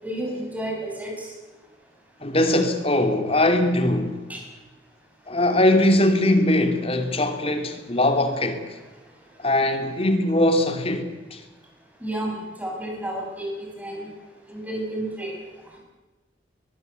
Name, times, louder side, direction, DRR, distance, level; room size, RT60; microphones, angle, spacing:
voice 1, 0.0-1.3 4.3-4.4 12.0-13.5 13.8-14.1 14.5-15.3, right 1 dB, 10° right, 7.9 m, -31 dB
voice 2, 2.2-4.2 5.3-8.7 9.4-11.4, left 1 dB, 30° left, 2.9 m, -21 dB
22.5 x 22.0 x 8.3 m
head